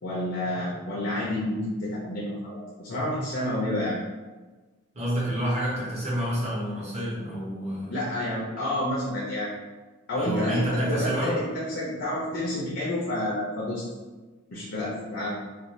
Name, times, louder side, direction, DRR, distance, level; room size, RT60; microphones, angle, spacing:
voice 1, 0.0-4.0 7.9-9.5 10.1-13.9 14.5-15.3, left 1 dB, 55° left, -5 dB, 0.5 m, -29 dB
voice 2, 4.9-8.0 10.2-11.4, equal, 35° right, -7 dB, 0.9 m, -28 dB
2.5 x 2.3 x 3.0 m, 1.3 s
head